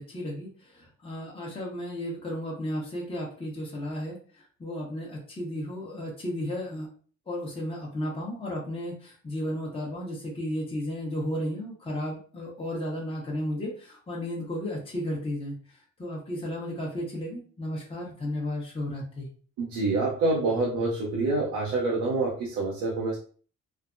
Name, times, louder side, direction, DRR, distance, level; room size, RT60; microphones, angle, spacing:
voice 1, 0.0-6.9 7.3-19.3, left 1 dB, 20° left, -3 dB, 0.9 m, -34 dB
voice 2, 19.6-23.2, right 3 dB, 85° right, -4 dB, 0.8 m, -27 dB
3.2 x 2.1 x 2.5 m, 0.43 s
cardioid pair, 90°, 30 cm